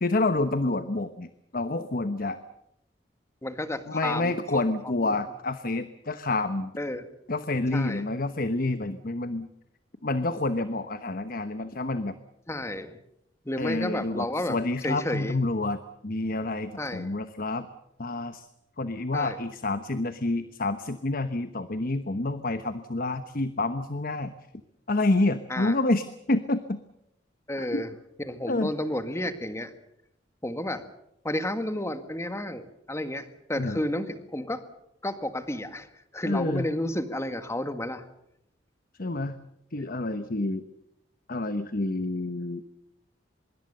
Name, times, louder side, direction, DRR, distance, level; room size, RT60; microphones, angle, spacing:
voice 1, 0.0-2.4 3.9-6.7 7.3-9.5 10.0-12.2 13.6-17.7 18.0-18.5 18.8-24.3 24.9-26.8 27.6-27.9 28.5-28.7 33.6-33.8 36.2-36.7 39.0-39.4 39.7-40.7 41.3-42.6, left 2 dB, 50° left, 11 dB, 1.1 m, -28 dB
voice 2, 3.4-4.6 6.8-7.1 7.7-8.0 12.5-13.0 13.5-14.6 14.8-15.4 16.8-17.1 19.1-19.4 25.5-25.7 27.5-27.9 28.2-29.7 30.4-30.8 31.2-34.6 35.0-35.9 36.1-38.0, left 1 dB, 15° left, 9 dB, 1.8 m, -31 dB
25.0 x 22.5 x 6.8 m, 0.81 s
head